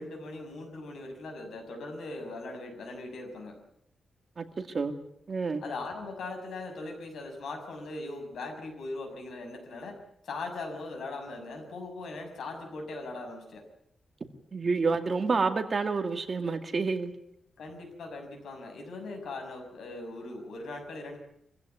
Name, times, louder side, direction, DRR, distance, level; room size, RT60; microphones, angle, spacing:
voice 1, 0.0-3.6 5.6-13.6 17.6-21.2, left 2 dB, 85° left, 3 dB, 6.6 m, -40 dB
voice 2, 5.3-5.6 14.5-17.1, right 4 dB, 40° right, 7 dB, 2.2 m, -28 dB
24.5 x 15.5 x 9.5 m, 0.74 s
wide cardioid pair, 135°, 0 cm